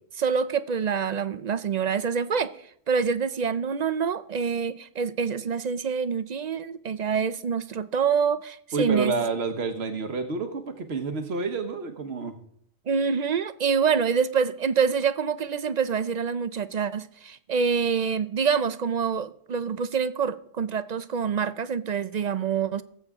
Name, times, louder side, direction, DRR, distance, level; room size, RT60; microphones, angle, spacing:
voice 1, 0.1-2.5 2.9-9.2 12.9-22.8, right 6 dB, 50° right, 0.6 m, -26 dB
voice 2, 8.7-12.3, right 4 dB, 80° right, 1.4 m, -29 dB
19.0 x 8.2 x 3.6 m
omnidirectional pair, 1.1 m